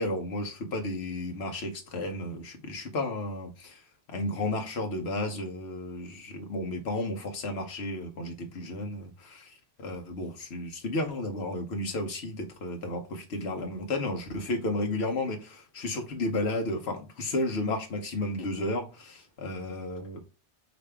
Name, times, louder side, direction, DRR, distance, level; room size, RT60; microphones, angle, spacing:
voice 1, 0.0-3.8 4.1-20.2, left 2 dB, 65° left, 1.2 m, -33 dB
5.0 x 2.7 x 3.3 m
omnidirectional pair, 1.2 m